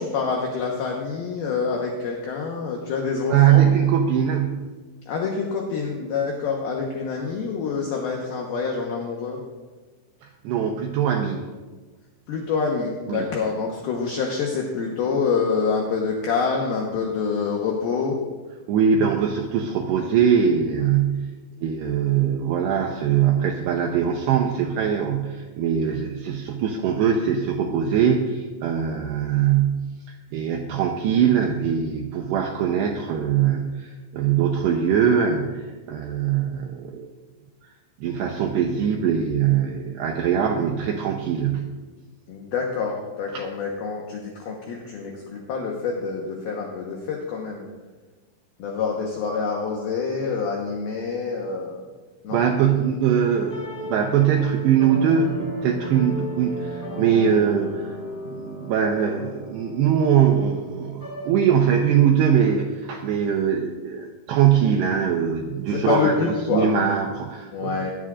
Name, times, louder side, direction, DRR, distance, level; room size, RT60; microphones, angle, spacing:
voice 1, 0.0-3.7 5.0-9.4 12.3-18.2 42.3-47.6 48.6-51.8 52.2-52.4 65.7-66.7 67.5-67.9, left 5 dB, 75° left, -1 dB, 2.3 m, -26 dB
voice 2, 3.3-4.6 10.4-11.4 13.1-13.3 18.7-21.3 21.6-29.9 30.3-37.1 38.0-41.7 43.3-43.4 52.3-58.0 58.3-66.1 66.5-67.8, right 8 dB, 90° right, 2 dB, 2.4 m, -22 dB
sound 1, 52.8-61.3, equal, 25° left, 2.3 m, -36 dB
21.0 x 12.0 x 2.5 m, 1.3 s
omnidirectional pair, 5.8 m